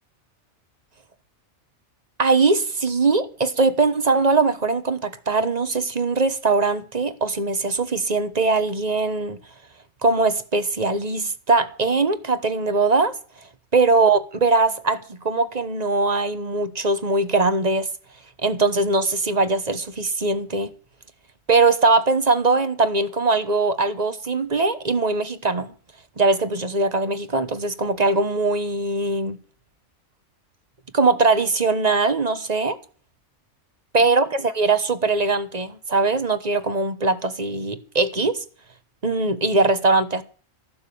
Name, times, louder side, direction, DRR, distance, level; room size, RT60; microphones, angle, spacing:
voice 1, 2.2-9.4 10.0-13.2 13.7-17.9 18.4-20.7 21.5-25.7 26.2-29.4 30.9-32.8 33.9-38.4 39.0-40.2, right 3 dB, 35° right, 1.2 m, -21 dB
14.5 x 11.5 x 7.0 m
omnidirectional pair, 1.3 m